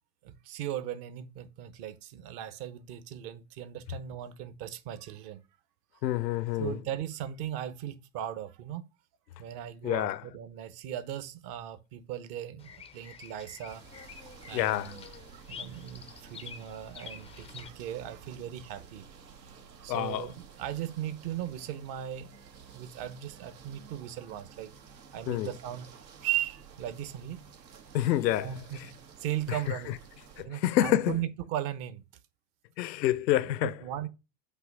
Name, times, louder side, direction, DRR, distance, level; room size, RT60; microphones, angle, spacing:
voice 1, 0.2-5.4 6.6-8.9 9.4-13.8 14.5-15.0 15.3-19.0 19.8-24.7 25.1-25.9 26.2-27.4 28.3-30.0 30.4-32.0 33.4-34.1, right 11 dB, 50° right, 1.2 m, -37 dB
voice 2, 6.0-6.8 9.8-10.2 14.5-14.9 19.9-20.3 25.3-25.5 27.9-28.5 29.5-29.6 30.4-31.2 32.8-33.7, left 13 dB, 80° left, 0.7 m, -27 dB
Bird vocalization bird call bird song, 12.6-17.7, left 6 dB, 15° left, 0.4 m, -48 dB
sound 1, 13.6-30.4, right 6 dB, 80° right, 1.5 m, -52 dB
8.1 x 3.1 x 6.0 m
hypercardioid pair, 95°, 50 cm